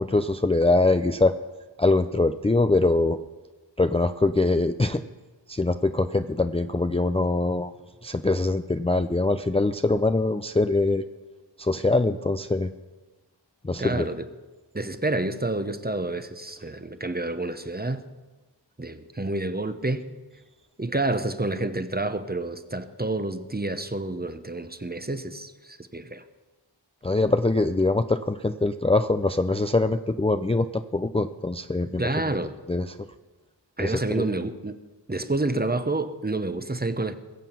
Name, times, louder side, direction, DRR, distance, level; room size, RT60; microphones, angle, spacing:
voice 1, 0.0-1.3 1.8-3.2 3.8-5.0 5.5-7.7 8.0-11.0 11.6-12.7 13.6-14.1 27.0-32.1 32.7-32.9 33.8-34.3, left 2 dB, 15° left, 0.5 m, -23 dB
voice 2, 13.7-14.3 14.7-18.1 18.8-20.1 20.8-26.2 32.0-32.5 33.8-34.7 35.1-37.1, right 2 dB, 20° right, 0.8 m, -29 dB
21.0 x 7.3 x 5.8 m
wide cardioid pair, 40°, 44 cm